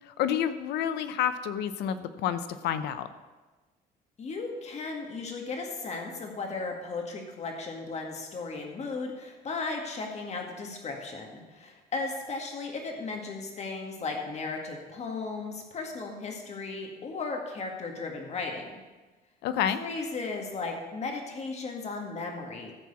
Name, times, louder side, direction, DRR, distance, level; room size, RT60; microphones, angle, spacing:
voice 1, 0.1-3.1 19.4-19.8, left 9 dB, 80° left, 12 dB, 0.7 m, -29 dB
voice 2, 4.2-18.8 19.8-22.7, left 3 dB, 40° left, 2 dB, 2.0 m, -36 dB
14.0 x 4.7 x 7.1 m, 1.2 s
cardioid pair, 110°, 17 cm